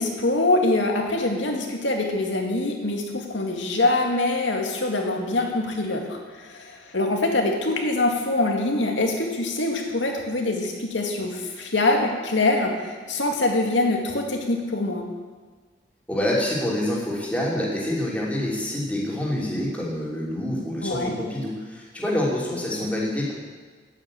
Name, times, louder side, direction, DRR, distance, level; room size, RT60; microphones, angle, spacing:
voice 1, 0.0-15.0 20.8-21.1, left 2 dB, 80° left, 1 dB, 2.1 m, -24 dB
voice 2, 16.1-23.3, left 1 dB, 10° left, -5 dB, 2.9 m, -26 dB
9.5 x 8.9 x 8.5 m, 1.4 s
head